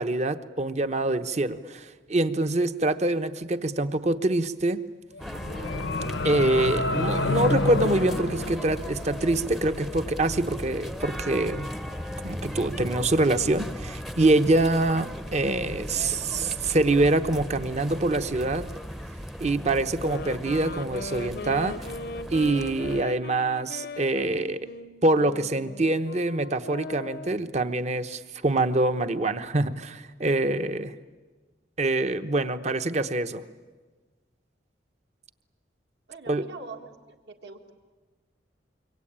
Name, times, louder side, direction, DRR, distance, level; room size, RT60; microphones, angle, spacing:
voice 1, 0.0-4.8 6.2-11.7 12.2-18.7 19.4-21.8 22.3-24.6 25.0-30.9 31.8-33.4 36.3-36.4, right 2 dB, 40° right, 10 dB, 1.0 m, -25 dB
sound 1, 5.2-9.4, left 2 dB, 90° left, 1.1 m, -28 dB
sound 2, 5.2-23.0, equal, ahead, 0.7 m, -37 dB
sound 3, 19.9-27.5, left 3 dB, 60° left, 0.8 m, -39 dB
voice 2, 36.1-37.7, right 4 dB, 65° right, 4 dB, 2.0 m, -43 dB
26.0 x 24.0 x 8.8 m, 1.3 s
head